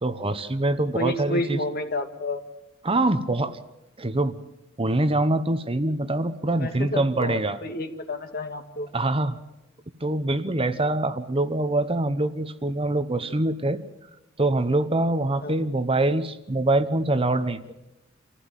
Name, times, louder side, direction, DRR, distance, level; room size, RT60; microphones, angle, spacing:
voice 1, 0.0-1.6 2.8-3.6 4.0-4.3 4.8-7.6 8.9-9.4 10.0-13.8 14.4-17.6, right 2 dB, 30° right, 11 dB, 1.0 m, -24 dB
voice 2, 0.9-2.4 6.6-8.9 15.4-15.5, left 1 dB, 50° left, 6 dB, 2.3 m, -30 dB
27.0 x 15.5 x 9.1 m, 0.97 s
head